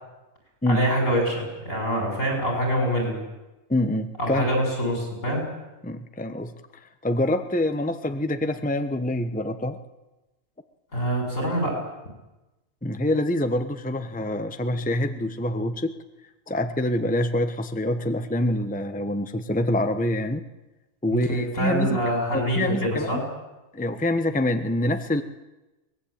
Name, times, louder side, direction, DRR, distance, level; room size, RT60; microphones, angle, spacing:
voice 1, 0.7-3.2 4.2-5.5 10.9-11.8 21.1-23.2, equal, 75° left, 2 dB, 7.9 m, -25 dB
voice 2, 3.7-4.4 5.8-6.5 6.8-9.8 12.8-15.9 16.5-20.4 21.0-22.0 22.3-23.2 23.7-25.2, left 1 dB, 5° left, 9 dB, 1.0 m, -26 dB
23.0 x 19.5 x 8.8 m, 1.1 s
omnidirectional pair, 1.4 m